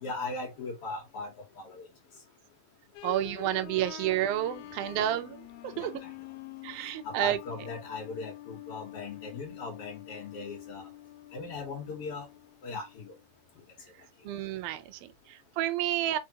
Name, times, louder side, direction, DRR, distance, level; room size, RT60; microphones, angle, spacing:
voice 1, 0.0-1.9 5.0-5.1 5.7-6.1 7.0-10.8 11.3-12.3 12.6-13.1, left 3 dB, 60° left, 2.1 m, -39 dB
sound 1, 2.9-13.6, left 15 dB, 90° left, 2.0 m, -47 dB
voice 2, 3.0-5.4 5.6-5.9 6.6-7.4 14.2-16.2, right 12 dB, 80° right, 1.4 m, -30 dB
4.4 x 3.6 x 2.8 m
omnidirectional pair, 3.3 m